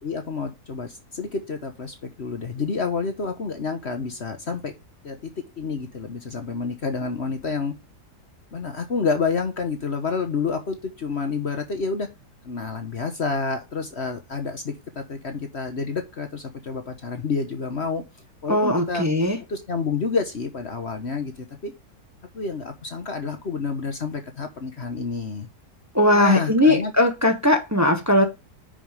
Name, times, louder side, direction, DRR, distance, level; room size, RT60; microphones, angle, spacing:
voice 1, 0.0-4.7 5.0-5.3 5.6-7.7 8.5-12.1 12.4-18.0 18.4-19.0 19.5-21.3 21.6-21.7 22.3-25.5 26.1-26.9, left 4 dB, 45° left, 1.3 m, -29 dB
voice 2, 18.5-19.4 25.9-28.2, left 1 dB, 10° right, 1.2 m, -19 dB
10.0 x 5.7 x 3.5 m
omnidirectional pair, 1.7 m